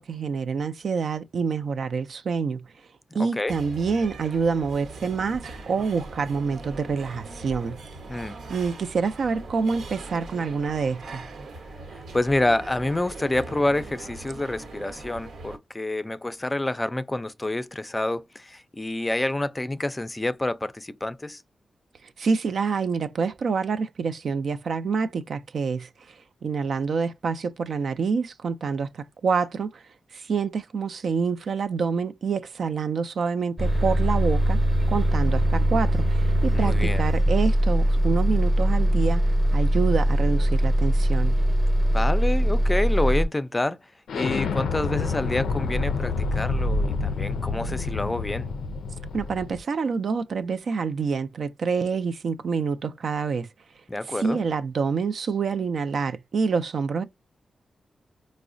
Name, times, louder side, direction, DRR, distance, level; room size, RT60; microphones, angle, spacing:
voice 1, 0.0-2.6 3.1-7.8 8.5-11.2 22.2-26.2 26.4-29.8 30.1-34.6 34.9-39.2 39.5-41.4 49.1-53.5 54.2-57.0, right 5 dB, 70° right, 0.4 m, -27 dB
voice 2, 3.1-3.5 8.1-8.4 11.9-21.4 36.5-37.0 41.9-48.5 53.9-54.4, left 2 dB, 20° left, 0.4 m, -28 dB
sound 1, 3.5-15.6, right 2 dB, 90° right, 1.0 m, -41 dB
Bus, 33.6-43.3, equal, 10° right, 0.7 m, -21 dB
Explosion, 44.1-49.6, left 3 dB, 90° left, 0.4 m, -28 dB
4.6 x 2.0 x 2.5 m
cardioid pair, 80°, 0 cm